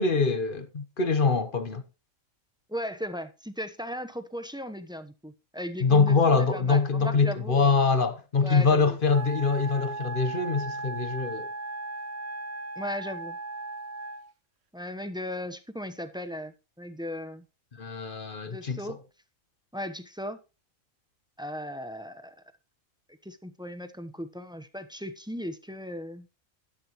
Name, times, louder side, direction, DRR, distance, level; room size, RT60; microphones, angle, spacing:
voice 1, 0.0-1.8 5.8-11.5 17.8-18.8, left 4 dB, 45° left, 1.2 m, -24 dB
voice 2, 2.7-7.7 8.4-9.0 12.8-13.4 14.7-17.4 18.4-19.0 19.7-20.4 21.4-22.3 23.2-26.3, equal, 5° right, 0.8 m, -37 dB
Wind instrument woodwind instrument, 9.1-14.3, right 3 dB, 55° right, 1.3 m, -37 dB
12.0 x 10.0 x 3.1 m
omnidirectional pair, 1.4 m